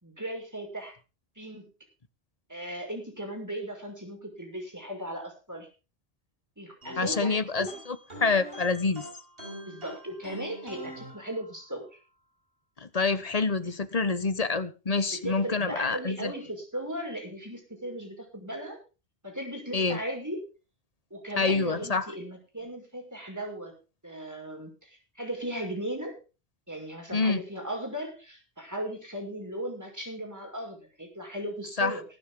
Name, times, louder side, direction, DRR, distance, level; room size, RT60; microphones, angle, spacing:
voice 1, 0.0-0.9 1.4-1.7 2.5-5.7 6.6-7.7 9.7-12.0 15.1-18.8 19.2-20.4 21.1-23.7 24.0-26.2 26.7-32.0, right 1 dB, 15° right, 6.0 m, -37 dB
sound 1, 6.8-11.9, equal, 65° right, 5.4 m, -44 dB
voice 2, 7.0-7.7 8.2-9.0 12.8-16.3 19.7-20.0 21.4-22.1 27.1-27.4 31.8-31.9, left 4 dB, 40° left, 1.2 m, -27 dB
20.5 x 9.5 x 3.8 m
omnidirectional pair, 1.0 m